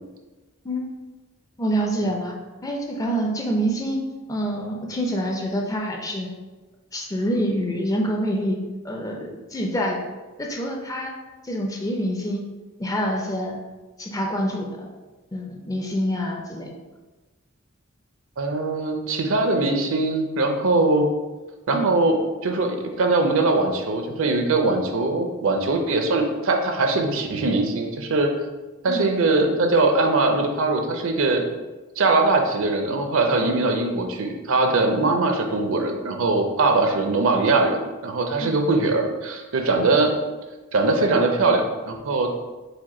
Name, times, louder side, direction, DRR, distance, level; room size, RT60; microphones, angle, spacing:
voice 1, 1.6-2.3 2.6-4.0 4.3-6.3 6.9-10.0 10.4-11.1 11.4-12.4 12.8-13.6 14.0-14.9 15.3-16.7 21.7-21.9 28.9-29.1 38.4-38.5, equal, 15° left, 1 dB, 0.4 m, -26 dB
voice 2, 18.4-21.1 21.7-28.3 28.8-31.4 32.0-40.1 40.7-42.3, right 3 dB, 65° right, 4 dB, 0.5 m, -21 dB
4.9 x 2.2 x 4.1 m, 1.2 s
head